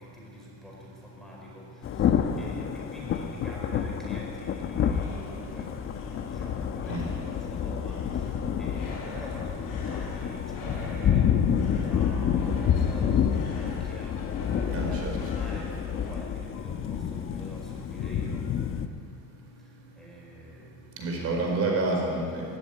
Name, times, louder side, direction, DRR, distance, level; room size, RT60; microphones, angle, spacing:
voice 1, 0.0-5.7 6.3-15.7 16.1-18.5 19.6-21.2, equal, ahead, -3 dB, 4.7 m, -46 dB
Thunder / Rain, 1.8-18.9, left 8 dB, 40° left, 1.1 m, -28 dB
sound 1, 4.7-16.2, left 1 dB, 85° left, 7.6 m, -44 dB
voice 2, 14.7-15.1 21.0-22.4, right 2 dB, 45° right, 0 dB, 4.6 m, -28 dB
17.5 x 16.5 x 9.8 m, 2.3 s
cardioid pair, 170°, 33 cm